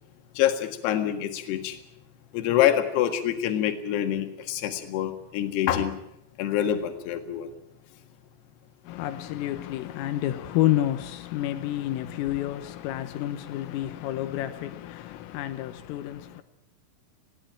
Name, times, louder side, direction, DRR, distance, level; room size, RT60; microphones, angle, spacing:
voice 1, 0.4-1.8 2.3-6.0 6.4-7.5, left 11 dB, 60° left, 3.5 m, -26 dB
voice 2, 8.8-16.4, left 13 dB, 85° left, 3.6 m, -29 dB
20.5 x 16.5 x 8.9 m
omnidirectional pair, 5.8 m